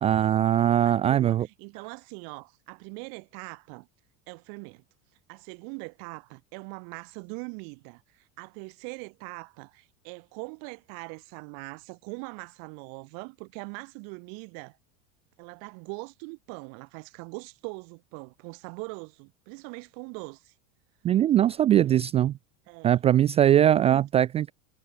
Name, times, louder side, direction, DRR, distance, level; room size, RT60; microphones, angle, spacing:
voice 1, 0.0-1.5 21.0-22.3 22.8-24.5, right 11 dB, 15° right, 0.4 m, -21 dB
voice 2, 0.7-3.9 4.3-4.8 5.3-14.8 15.4-20.5 22.7-23.0 23.8-24.1, right 40 dB or more, 50° right, 5.3 m, -42 dB
supercardioid pair, 160°, 43 cm